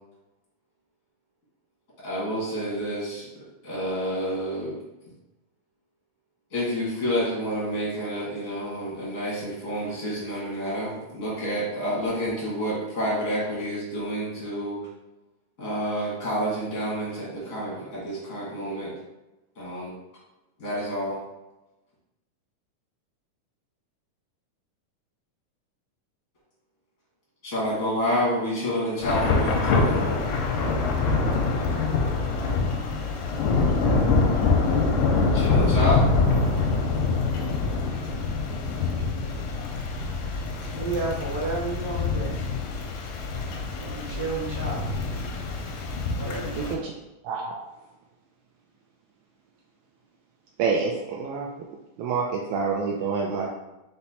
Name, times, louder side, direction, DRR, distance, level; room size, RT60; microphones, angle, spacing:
voice 1, 2.0-3.3 3.6-4.7 6.5-14.8 15.6-18.9 19.6-19.9 20.6-21.2 27.4-30.0 35.3-36.1, equal, 65° left, -6 dB, 0.8 m, -29 dB
Thunder / Rain, 29.0-46.7, left 4 dB, 85° left, 2.2 m, -25 dB
voice 2, 40.7-42.3 43.8-44.8 46.1-46.8, right 3 dB, 65° right, -6 dB, 1.5 m, -31 dB
voice 3, 46.6-46.9 47.2-47.5 50.6-51.5 52.0-53.5, right 5 dB, 85° right, -2 dB, 1.6 m, -27 dB
5.9 x 2.1 x 4.0 m, 0.99 s
omnidirectional pair, 3.8 m